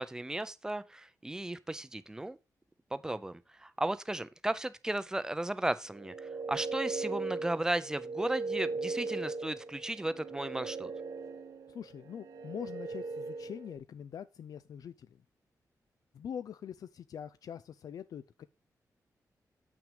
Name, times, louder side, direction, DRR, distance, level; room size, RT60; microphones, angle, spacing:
voice 1, 0.0-2.4 2.9-10.9, right 1 dB, 10° right, 0.5 m, -35 dB
sound 1, 5.9-13.8, right 3 dB, 70° right, 1.1 m, -38 dB
voice 2, 11.7-15.2 16.1-18.5, left 8 dB, 70° left, 0.4 m, -43 dB
7.6 x 6.2 x 4.9 m
wide cardioid pair, 160°, 6 cm